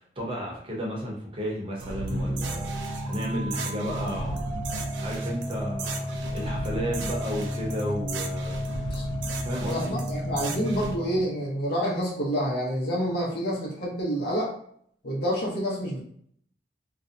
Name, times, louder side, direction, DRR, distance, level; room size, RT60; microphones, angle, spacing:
voice 1, 0.2-4.4 4.7-9.0 9.4-10.0, equal, 30° right, -3 dB, 0.7 m, -33 dB
sound 1, 1.8-10.9, right 3 dB, 85° right, 0.4 m, -37 dB
sound 2, 2.1-11.3, equal, 15° left, 0.8 m, -32 dB
voice 2, 9.7-14.5 15.0-16.0, equal, 60° left, -4 dB, 0.8 m, -28 dB
2.5 x 2.1 x 2.5 m, 0.62 s
head